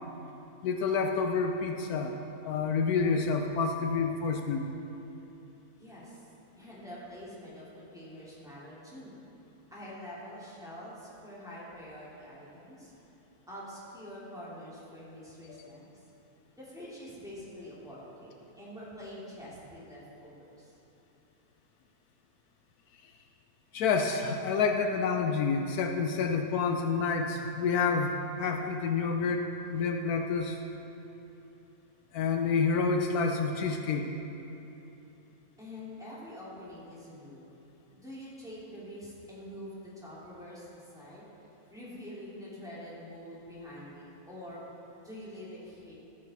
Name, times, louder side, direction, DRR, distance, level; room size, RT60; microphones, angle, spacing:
voice 1, 0.6-2.1 2.4-4.7 15.5-15.7 23.7-30.6 32.1-34.1, left 5 dB, 80° left, 4 dB, 1.1 m, -28 dB
voice 2, 5.8-6.3 6.6-9.2 9.7-12.9 13.5-15.8 16.5-20.8 35.6-37.4 37.9-41.2 41.7-44.6 45.0-45.9, equal, ahead, -9 dB, 2.6 m, -46 dB
13.5 x 7.8 x 4.2 m, 2.9 s
omnidirectional pair, 1.6 m